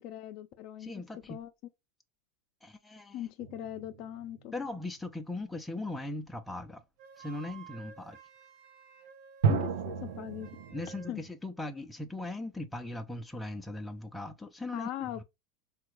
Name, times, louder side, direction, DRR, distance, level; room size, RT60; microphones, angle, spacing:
voice 1, 0.0-0.9 1.3-1.5 3.1-4.5 9.5-10.5 11.1-11.2 14.7-15.2, left 12 dB, 55° left, 0.5 m, -40 dB
voice 2, 0.8-1.4 2.6-3.3 4.5-6.8 7.2-8.2 10.7-15.2, left 2 dB, 5° left, 0.5 m, -39 dB
sound 1, 3.4-4.7 9.4-11.3, right 6 dB, 85° right, 0.6 m, -33 dB
Wind instrument woodwind instrument, 7.0-11.2, right 8 dB, 55° right, 1.2 m, -53 dB
3.5 x 2.2 x 3.0 m
supercardioid pair, 120°, 0 cm